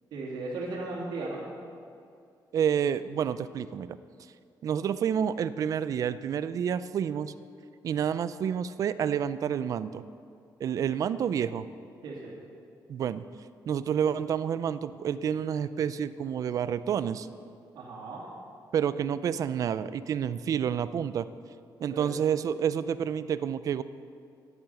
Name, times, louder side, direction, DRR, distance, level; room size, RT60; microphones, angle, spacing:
voice 1, 0.1-1.4 12.0-12.3 17.7-18.3 21.9-22.1, right 3 dB, 85° right, -4 dB, 2.7 m, -36 dB
voice 2, 2.5-4.0 4.6-7.3 7.8-10.0 10.6-11.7 12.9-13.2 13.7-17.3 18.7-21.3 21.8-23.8, right 8 dB, 50° right, 15 dB, 0.4 m, -29 dB
11.0 x 8.7 x 7.0 m, 2.4 s
cardioid pair, 165°, 8 cm